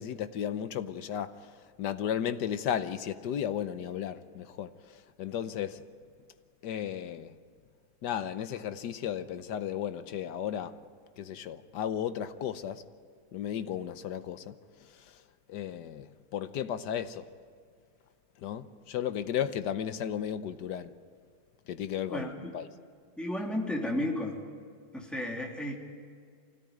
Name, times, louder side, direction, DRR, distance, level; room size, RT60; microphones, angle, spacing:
voice 1, 0.0-1.3 1.8-4.7 5.2-5.8 6.6-7.3 8.0-10.8 11.2-12.8 13.3-14.5 15.5-17.3 18.4-20.9 21.7-22.7, left 9 dB, 65° left, 1.3 m, -34 dB
voice 2, 22.1-22.5 23.2-24.4 24.9-25.8, left 1 dB, ahead, 2.8 m, -33 dB
25.0 x 17.0 x 9.5 m
omnidirectional pair, 2.1 m